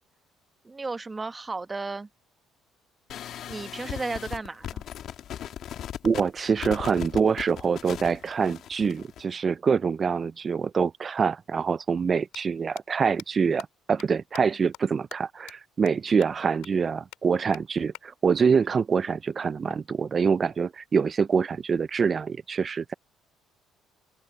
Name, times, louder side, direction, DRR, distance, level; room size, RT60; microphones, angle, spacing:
voice 1, 0.6-2.1 3.5-4.8, right 3 dB, 25° right, 1.3 m, -34 dB
sound 1, 3.1-9.2, left 10 dB, 65° left, 2.2 m, -38 dB
voice 2, 6.0-22.9, right 6 dB, 40° right, 0.5 m, -25 dB
sound 2, 12.3-12.4 12.8-12.9 13.2-13.3 13.6-13.7 14.0-14.1 14.3-14.4 14.7-14.8 15.1-15.2 15.5-15.6 15.9-16.0 16.2-16.3 16.6-16.7 17.1-17.2 17.5-17.6 17.9-18.0 19.7-20.7, left 19 dB, 85° left, 4.3 m, -45 dB
open air
supercardioid pair, 80°, 0 cm